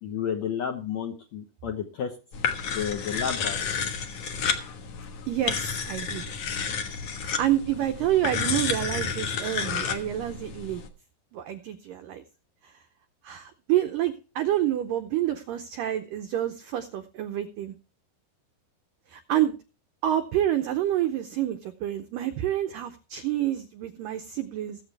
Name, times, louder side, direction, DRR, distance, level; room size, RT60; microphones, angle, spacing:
voice 1, 0.0-2.1 2.7-3.6, left 8 dB, 80° left, 2 dB, 1.5 m, -31 dB
sound 1, 2.3-10.9, left 6 dB, 65° left, 1.7 m, -31 dB
voice 2, 5.3-6.2 7.2-10.8 11.3-12.2 12.6-12.7 13.2-17.8 19.1-19.5 20.0-24.8, right 12 dB, 85° right, 8 dB, 1.9 m, -28 dB
20.0 x 8.1 x 3.4 m, 0.34 s
omnidirectional pair, 4.9 m